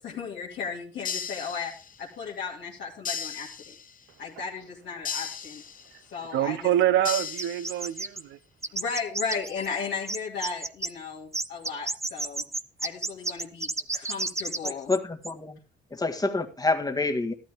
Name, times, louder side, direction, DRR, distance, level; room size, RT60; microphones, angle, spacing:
voice 1, 0.0-1.7 2.0-3.7 4.2-5.6 6.1-6.7 8.7-12.4 12.8-14.9, left 5 dB, 70° left, 2.4 m, -35 dB
sound 1, 1.0-2.1 3.0-4.1 5.0-6.1 7.0-8.1, left 7 dB, 45° left, 1.1 m, -36 dB
voice 2, 6.3-8.4, right 12 dB, 85° right, 0.7 m, -25 dB
sound 2, 7.4-8.2 8.6-9.8 10.1-10.9 11.3-15.0 15.2-15.3, right 2 dB, 15° right, 0.7 m, -31 dB
voice 3, 14.6-15.6 15.9-17.3, left 3 dB, 20° left, 1.7 m, -27 dB
13.0 x 12.5 x 3.5 m
cardioid pair, 75°, 19 cm